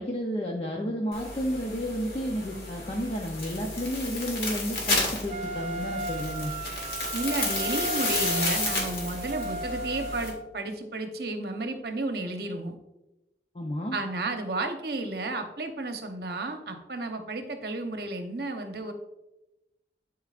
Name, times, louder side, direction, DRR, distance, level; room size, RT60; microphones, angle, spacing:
voice 1, 0.0-6.5 13.5-14.0, equal, 35° left, 0 dB, 0.6 m, -31 dB
sound 1, 1.1-10.3, left 2 dB, 55° left, 1.9 m, -32 dB
Wind instrument woodwind instrument, 5.3-10.5, right 2 dB, 35° right, 0.5 m, -36 dB
voice 2, 7.1-12.8 13.9-18.9, right 2 dB, 65° right, 5 dB, 0.9 m, -32 dB
12.0 x 4.6 x 2.5 m, 0.95 s
head